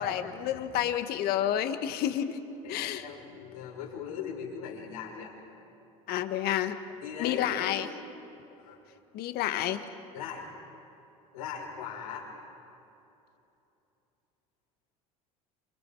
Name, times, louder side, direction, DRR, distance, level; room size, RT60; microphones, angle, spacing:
voice 1, 0.0-2.4 2.7-3.1 6.1-6.8 7.2-7.9 9.1-9.9, left 11 dB, 60° left, 8 dB, 1.8 m, -30 dB
voice 2, 2.6-5.4 7.0-7.9 8.6-8.8 10.1-10.5 11.3-12.3, left 7 dB, 85° left, -1 dB, 6.0 m, -40 dB
29.0 x 28.0 x 4.9 m, 2.9 s
hypercardioid pair, 80°, 18 cm